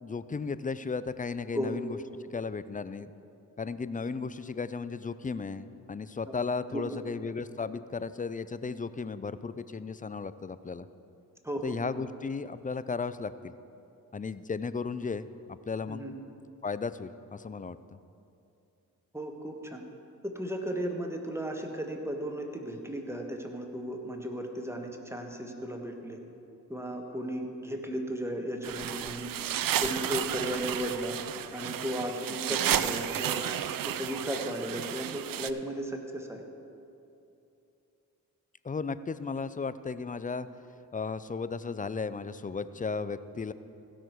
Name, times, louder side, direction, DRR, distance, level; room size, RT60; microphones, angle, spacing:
voice 1, 0.0-2.0 2.3-3.1 3.6-10.9 11.6-13.5 14.1-16.0 16.6-17.8 38.6-40.5 40.9-43.5, left 4 dB, 20° left, 14 dB, 0.4 m, -35 dB
voice 2, 11.4-11.8 15.9-16.1 19.1-19.8 20.3-26.2 26.7-29.3 29.8-31.2 31.5-33.5 33.8-36.4, equal, 5° right, 2 dB, 1.5 m, -35 dB
sound 1, 28.6-35.5, right 10 dB, 60° right, 0.5 m, -32 dB
16.0 x 6.3 x 4.6 m, 2.7 s
supercardioid pair, 45°, 38 cm